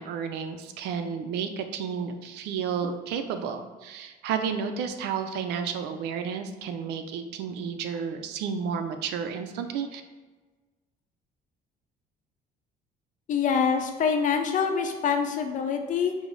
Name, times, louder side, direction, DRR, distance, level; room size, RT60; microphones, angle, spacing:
voice 1, 0.0-10.0, right 6 dB, 85° right, 7 dB, 0.4 m, -32 dB
voice 2, 13.3-16.1, left 6 dB, 50° left, 5 dB, 0.6 m, -25 dB
4.9 x 2.0 x 3.8 m, 1.3 s
cardioid pair, 110°, 17 cm